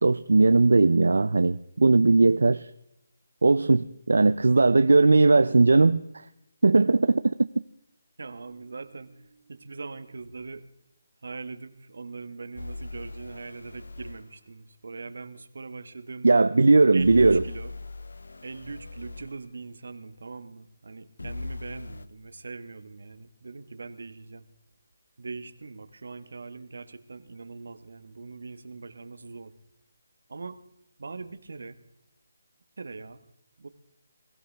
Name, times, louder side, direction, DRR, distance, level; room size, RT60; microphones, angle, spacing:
voice 1, 0.0-2.7 3.4-6.2 6.6-7.3 16.2-17.4, right 3 dB, 85° right, 13 dB, 0.5 m, -19 dB
voice 2, 8.2-10.7 11.2-16.4 16.9-17.7 18.4-24.5 25.2-29.5 30.3-30.6 31.0-31.8 32.8-33.2 33.6-33.7, right 4 dB, 70° right, 12 dB, 1.3 m, -41 dB
sound 1, 12.6-14.2 17.0-19.3 21.2-22.1, left 3 dB, 85° left, 0.8 m, -39 dB
22.0 x 15.5 x 3.4 m, 0.81 s
hypercardioid pair, 165°, 0 cm